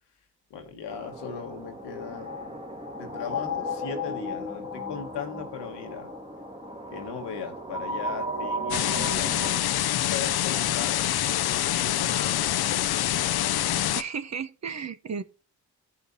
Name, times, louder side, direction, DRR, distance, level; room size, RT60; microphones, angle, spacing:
voice 1, 0.5-2.6 3.0-6.1 6.9-13.0, left 6 dB, 85° left, 1.5 m, -38 dB
sound 1, 0.9-9.6, left 1 dB, 15° right, 1.6 m, -35 dB
sound 2, 8.7-14.0, left 12 dB, 65° left, 0.6 m, -26 dB
voice 2, 14.0-15.2, right 6 dB, 40° right, 0.8 m, -33 dB
14.0 x 5.6 x 2.7 m
supercardioid pair, 45°, 41 cm